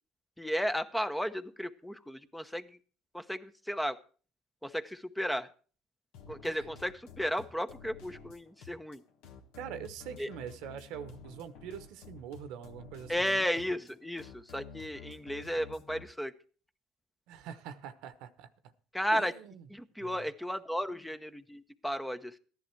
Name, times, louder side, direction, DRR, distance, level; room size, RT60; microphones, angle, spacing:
voice 1, 0.4-2.8 3.1-4.0 4.6-5.5 6.3-9.0 10.2-10.3 13.1-16.3 18.9-19.3 19.7-22.4, equal, 5° left, 10 dB, 0.8 m, -34 dB
sound 1, 6.1-16.0, left 5 dB, 75° left, 1.5 m, -52 dB
voice 2, 9.6-13.5 17.3-18.5 19.1-19.7 20.0-20.2, right 9 dB, 70° right, 12 dB, 1.1 m, -44 dB
14.0 x 11.0 x 4.5 m, 0.41 s
supercardioid pair, 80°, 0 cm